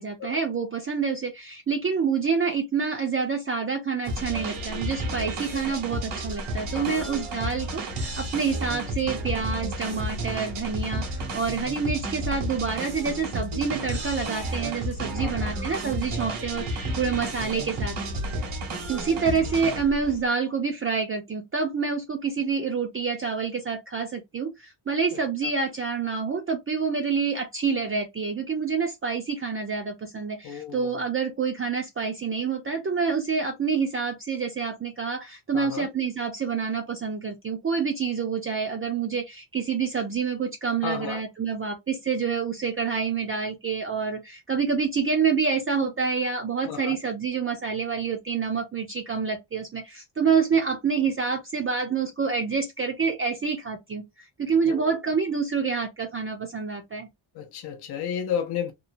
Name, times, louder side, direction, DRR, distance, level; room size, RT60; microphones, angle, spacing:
voice 1, 0.0-18.0 18.9-57.1, right 5 dB, 30° right, 0.4 m, -27 dB
sound 1, 4.0-20.2, right 1 dB, 85° right, 1.3 m, -32 dB
voice 2, 5.2-5.6 6.7-7.1 15.2-15.5 25.1-25.2 30.4-31.0 35.5-35.9 40.8-41.2 46.7-47.0 54.7-54.9 57.3-58.7, left 8 dB, 55° left, 0.6 m, -33 dB
2.9 x 2.0 x 2.5 m
cardioid pair, 130°, 49 cm